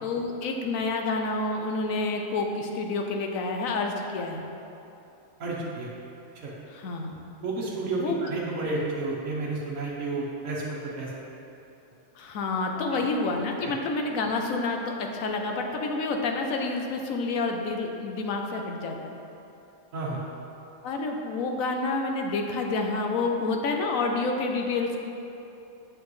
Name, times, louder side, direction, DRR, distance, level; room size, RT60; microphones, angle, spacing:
voice 1, 0.0-4.4 6.7-7.2 8.0-8.2 12.2-19.1 20.8-25.0, left 3 dB, 80° left, 3 dB, 1.1 m, -28 dB
voice 2, 5.4-5.9 6.4-6.5 7.4-11.1 19.9-20.2, right 2 dB, 75° right, -6 dB, 1.4 m, -31 dB
8.2 x 6.4 x 3.1 m, 2.9 s
omnidirectional pair, 1.4 m